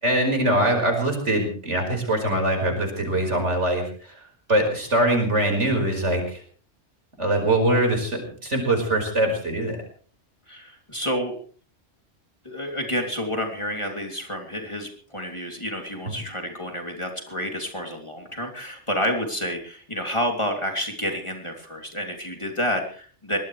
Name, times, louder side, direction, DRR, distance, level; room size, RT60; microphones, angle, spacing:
voice 1, 0.0-4.2 4.5-6.4 7.2-9.8, right 1 dB, 85° right, 3 dB, 5.4 m, -23 dB
voice 2, 10.5-11.3 12.4-23.4, equal, 25° left, 2 dB, 3.2 m, -29 dB
23.0 x 18.5 x 3.3 m, 0.44 s
omnidirectional pair, 1.2 m